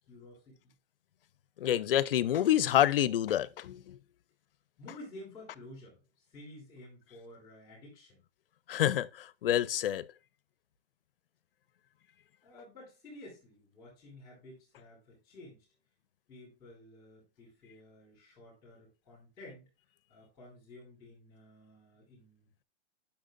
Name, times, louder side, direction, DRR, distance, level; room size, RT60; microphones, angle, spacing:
voice 1, 0.1-0.7 4.8-6.0 6.3-8.2 12.4-15.6 16.3-19.6 20.1-22.6, left 1 dB, 10° left, 3.1 m, -52 dB
voice 2, 1.6-4.0 8.7-10.1, left 11 dB, 60° left, 0.5 m, -28 dB
10.0 x 5.8 x 2.5 m
hypercardioid pair, 175°, 32 cm